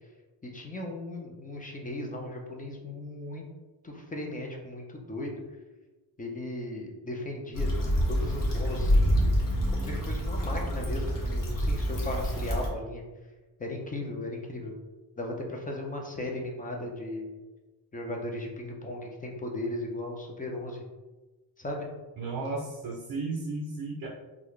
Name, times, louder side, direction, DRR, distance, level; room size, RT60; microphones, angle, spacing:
voice 1, 0.4-3.4 3.8-5.3 6.2-7.7 8.1-9.4 9.7-13.0 13.6-14.7 15.2-17.3 17.9-20.8 21.6-21.9, left 1 dB, 20° left, 1 dB, 0.6 m, -36 dB
Stream / Traffic noise roadway noise / Trickle dribble, 7.5-12.7, equal, 45° left, 1.0 m, -27 dB
voice 2, 22.2-24.1, right 3 dB, 50° right, 0 dB, 0.6 m, -34 dB
3.7 x 2.4 x 3.2 m, 1.2 s
cardioid pair, 105°, 44 cm